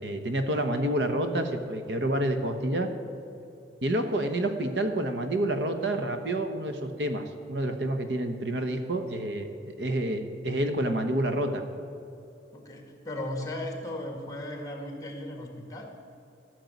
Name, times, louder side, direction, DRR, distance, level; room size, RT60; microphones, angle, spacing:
voice 1, 0.0-2.9 3.8-9.5 9.8-11.6, right 1 dB, 85° right, 7 dB, 1.2 m, -28 dB
voice 2, 12.5-15.9, left 1 dB, 20° left, 3 dB, 1.8 m, -36 dB
13.5 x 6.6 x 9.4 m, 2.7 s
head